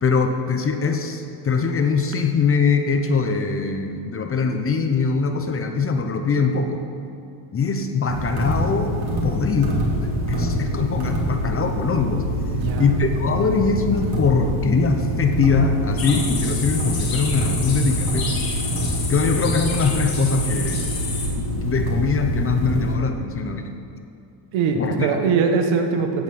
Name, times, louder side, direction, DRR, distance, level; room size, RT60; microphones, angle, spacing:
voice 1, 0.0-6.8 7.5-9.0 9.2-9.8 10.3-12.3 12.8-18.5 19.1-20.9 21.4-23.7 24.7-25.1, left 5 dB, 25° left, 6 dB, 0.8 m, -22 dB
sound 1, 8.1-23.0, equal, 50° right, 3.1 m, -25 dB
voice 2, 12.5-12.9 24.5-26.2, right 5 dB, 70° right, 5 dB, 1.4 m, -21 dB
sound 2, 16.0-21.3, left 4 dB, 45° left, 2.8 m, -30 dB
16.5 x 5.6 x 6.1 m, 2.6 s
cardioid pair, 130°, 50 cm